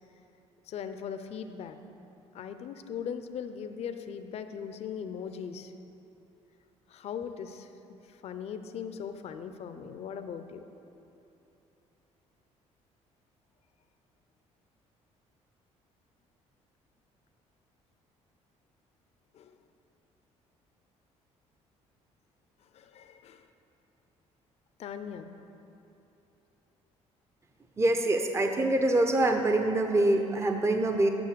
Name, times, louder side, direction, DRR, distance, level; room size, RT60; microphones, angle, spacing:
voice 1, 0.7-1.8 2.3-5.7 6.9-7.7 8.0-10.6 19.3-19.6 22.7-23.5 24.8-25.3, left 7 dB, 55° left, 9 dB, 0.6 m, -39 dB
voice 2, 27.8-31.1, right 1 dB, 20° right, 4 dB, 0.7 m, -25 dB
9.2 x 6.3 x 6.8 m, 3.0 s
cardioid pair, 95°, 12 cm